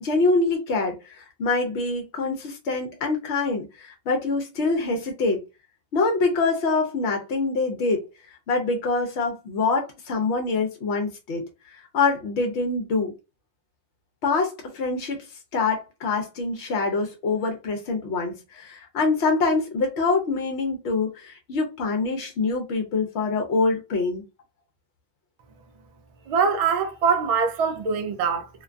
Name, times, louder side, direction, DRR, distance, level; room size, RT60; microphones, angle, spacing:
voice 1, 0.0-5.4 5.9-8.0 8.5-11.4 11.7-13.1 14.2-15.2 15.5-24.2, left 3 dB, 75° left, 1.0 m, -25 dB
voice 2, 26.3-28.5, right 6 dB, 65° right, 0.3 m, -23 dB
2.5 x 2.2 x 2.4 m
omnidirectional pair, 1.2 m